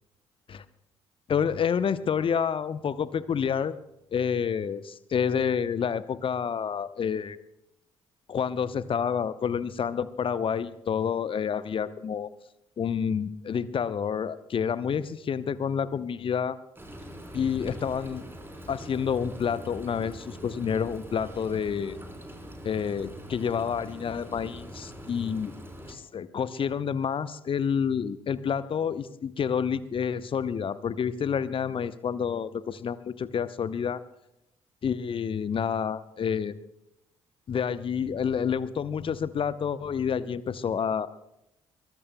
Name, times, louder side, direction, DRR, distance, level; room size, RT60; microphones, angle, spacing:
voice 1, 1.3-3.8 4.1-7.4 8.3-12.3 12.8-16.6 17.3-18.2 18.7-22.0 22.6-25.5 25.9-34.0 34.8-36.6 37.5-41.1, left 7 dB, 35° left, 16 dB, 0.8 m, -29 dB
Frying (food), 16.8-25.9, equal, 15° right, 3.9 m, -43 dB
22.5 x 20.5 x 2.2 m, 0.85 s
figure-of-eight pair, 45°, 14 cm